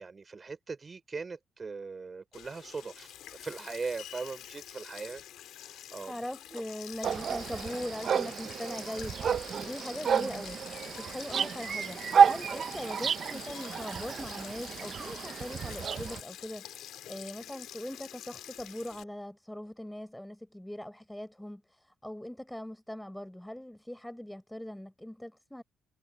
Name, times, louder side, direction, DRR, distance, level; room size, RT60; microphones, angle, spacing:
voice 1, 0.0-6.1 6.5-6.6 12.5-12.7, right 4 dB, 35° right, 4.9 m, -40 dB
Sink (filling or washing), 2.3-19.0, left 12 dB, 80° left, 4.3 m, -47 dB
voice 2, 6.1-10.6 11.0-16.7 17.0-25.6, left 1 dB, 5° left, 5.9 m, -41 dB
sound 1, 7.0-16.2, right 7 dB, 55° right, 0.5 m, -30 dB
cardioid pair, 90°, 0 cm